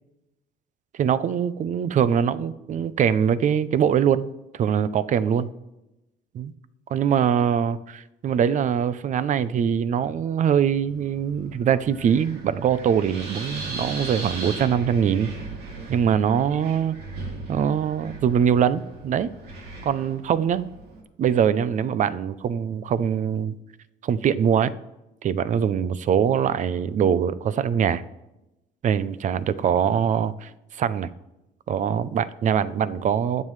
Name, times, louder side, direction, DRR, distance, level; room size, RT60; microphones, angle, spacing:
voice 1, 0.9-4.3 4.5-5.5 6.3-6.5 6.9-15.3 15.9-17.0 17.5-19.3 19.8-20.7 21.2-23.5 24.0-24.7 25.2-28.0 28.8-31.1 31.7-33.4, right 8 dB, 45° right, 16 dB, 0.6 m, -23 dB
Wind, 10.9-21.0, right 2 dB, 70° right, 2.9 m, -38 dB
20.5 x 7.5 x 3.2 m, 0.95 s
cardioid pair, 110°, 17 cm